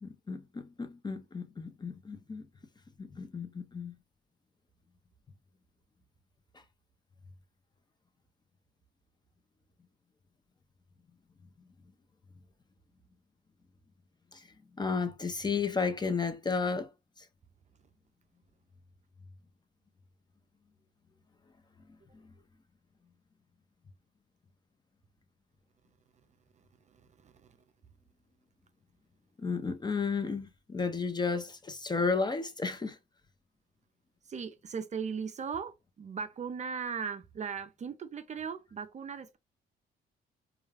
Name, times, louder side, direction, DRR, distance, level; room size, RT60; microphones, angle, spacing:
voice 1, 0.0-2.5 3.0-3.9 14.3-14.5 14.8-16.9 17.2-17.3 29.4-33.0, left 4 dB, 20° left, 0.4 m, -33 dB
voice 2, 26.5-27.6 34.2-39.4, right 6 dB, 35° right, 0.4 m, -38 dB
2.3 x 2.3 x 3.2 m
cardioid pair, 90°, 20 cm